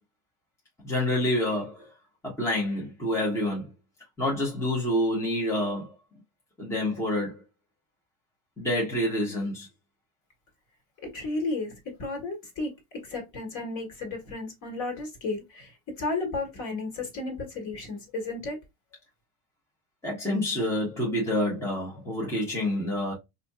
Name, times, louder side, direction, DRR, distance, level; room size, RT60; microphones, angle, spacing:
voice 1, 0.8-1.9 2.2-3.7 4.2-5.9 6.6-7.4 8.6-9.7 20.0-23.1, left 1 dB, 5° left, 0.9 m, -27 dB
voice 2, 11.0-18.6, left 3 dB, 40° left, 1.4 m, -33 dB
4.2 x 2.7 x 2.2 m
cardioid pair, 170°, 48 cm